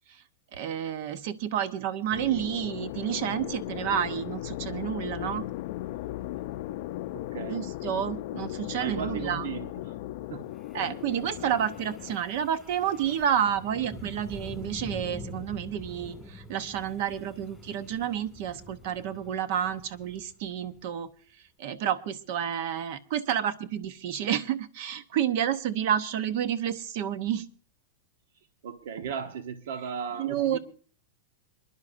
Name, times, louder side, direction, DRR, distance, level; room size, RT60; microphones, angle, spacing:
voice 1, 0.5-5.5 7.5-9.5 10.7-21.1 21.6-27.5 30.2-30.6, right 9 dB, 45° right, 13 dB, 0.9 m, -30 dB
sound 1, 2.1-12.2, left 15 dB, 45° left, 0.5 m, -37 dB
voice 2, 7.1-7.7 8.8-10.0 10.3-10.5 28.3-30.6, right 7 dB, 70° right, 8 dB, 1.0 m, -36 dB
Wind, 10.5-20.8, left 2 dB, ahead, 2.2 m, -45 dB
27.5 x 11.0 x 2.6 m, 0.42 s
supercardioid pair, 170°, 0 cm